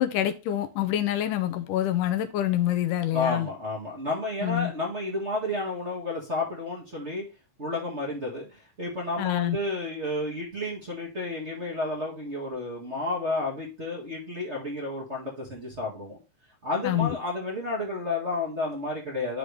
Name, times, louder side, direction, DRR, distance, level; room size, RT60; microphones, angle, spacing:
voice 1, 0.0-3.5 4.4-4.7 9.2-9.6 16.8-17.2, left 12 dB, 80° left, 2.2 m, -26 dB
voice 2, 3.1-7.2 7.6-16.2 16.6-19.4, left 2 dB, 25° right, 1.7 m, -31 dB
11.5 x 3.9 x 3.4 m
omnidirectional pair, 3.9 m